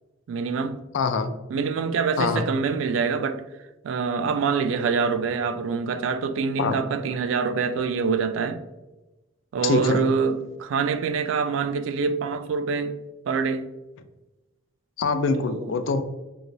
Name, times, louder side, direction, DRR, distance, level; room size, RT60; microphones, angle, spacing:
voice 1, 0.3-0.8 1.5-3.4 3.8-8.6 9.5-13.0 13.3-13.7 15.4-15.7, right 5 dB, 80° right, 0.3 m, -25 dB
voice 2, 0.9-1.3 2.2-2.4 6.6-6.7 9.6-10.0 15.0-16.0, left 4 dB, 75° left, 0.3 m, -24 dB
3.2 x 2.9 x 2.6 m
head